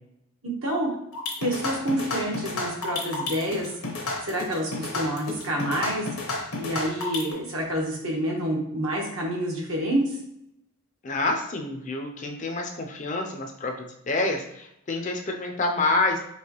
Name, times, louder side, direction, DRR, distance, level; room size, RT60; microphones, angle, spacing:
voice 1, 0.4-0.9 1.4-3.7 4.2-6.1 6.6-10.2, equal, 70° right, -2 dB, 1.2 m, -28 dB
sound 1, 1.1-7.3, left 3 dB, 80° left, 1.0 m, -31 dB
voice 2, 11.0-16.2, left 2 dB, 35° left, 3 dB, 0.5 m, -28 dB
4.6 x 3.1 x 3.0 m, 0.78 s
head